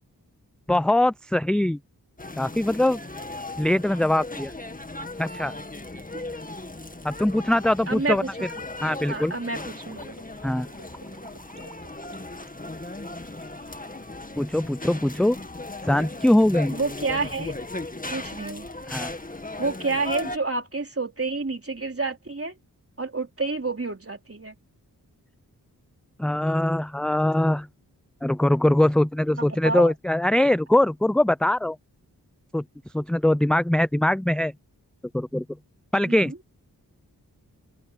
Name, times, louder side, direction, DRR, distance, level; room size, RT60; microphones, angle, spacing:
voice 1, 0.7-1.8 2.4-3.0 3.6-4.5 5.2-5.5 7.0-8.2 8.8-9.3 10.4-10.7 14.4-15.4 15.8-16.7 18.9-19.1 26.2-27.7 28.2-31.8 32.5-32.6 32.9-34.5 35.1-35.4 35.9-36.3, left 1 dB, ahead, 0.4 m, -22 dB
sound 1, 2.2-20.4, left 2 dB, 20° left, 1.9 m, -37 dB
voice 2, 7.9-8.3 8.5-8.7 9.1-10.1 16.7-17.5 18.1-18.7 19.6-22.5 23.0-24.5 29.4-29.9 36.0-36.4, right 3 dB, 35° right, 3.8 m, -29 dB
Gurgling, 7.9-14.4, right 3 dB, 55° right, 6.5 m, -51 dB
open air
cardioid pair, 40°, 38 cm